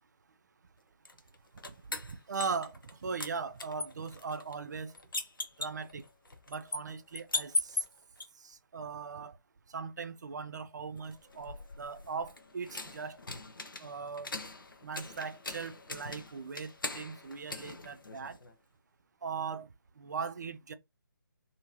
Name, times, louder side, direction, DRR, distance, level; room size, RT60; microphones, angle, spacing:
sound 1, 1.1-2.9 3.2-8.3 11.0-18.5, left 2 dB, 75° left, 0.7 m, -40 dB
voice 1, 1.6-4.9 5.6-6.0 6.5-7.8 8.4-9.4 9.7-13.2 13.8-14.3 14.8-18.4 19.2-19.7 20.0-20.7, right 5 dB, 55° right, 0.4 m, -39 dB
2.7 x 2.7 x 2.9 m
figure-of-eight pair, 145°, 11 cm